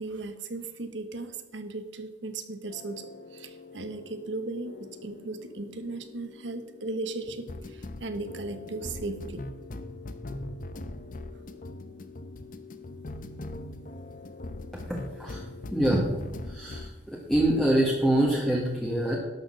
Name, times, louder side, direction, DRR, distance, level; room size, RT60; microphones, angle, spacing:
voice 1, 0.0-9.5, right 2 dB, 80° right, 9 dB, 1.1 m, -37 dB
sound 1, 2.7-17.0 17.3-17.6, left 2 dB, 50° left, 0.7 m, -41 dB
voice 2, 14.7-15.4 15.7-16.1 16.5-19.2, right 1 dB, ahead, -4 dB, 1.5 m, -25 dB
12.0 x 6.5 x 6.4 m, 1.1 s
head